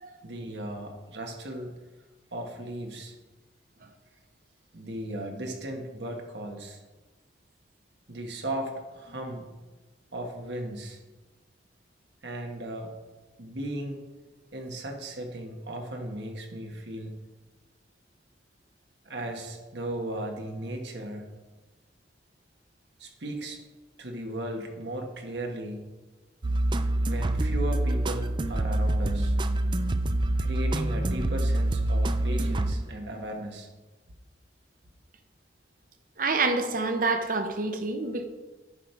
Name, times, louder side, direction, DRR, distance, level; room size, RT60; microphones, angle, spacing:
voice 1, 0.2-1.8 2.3-3.2 4.7-6.8 8.1-9.5 10.1-11.0 12.2-12.9 13.4-14.0 14.5-17.2 19.0-21.3 23.0-23.6 24.0-25.8 27.0-29.3 30.4-33.7, right 1 dB, 80° right, 2 dB, 1.5 m, -36 dB
Hip hop beats techno, 26.4-33.2, right 1 dB, 25° right, 0.4 m, -26 dB
voice 2, 36.2-38.3, right 3 dB, 50° right, 7 dB, 0.9 m, -27 dB
10.0 x 5.3 x 4.6 m, 1.2 s
head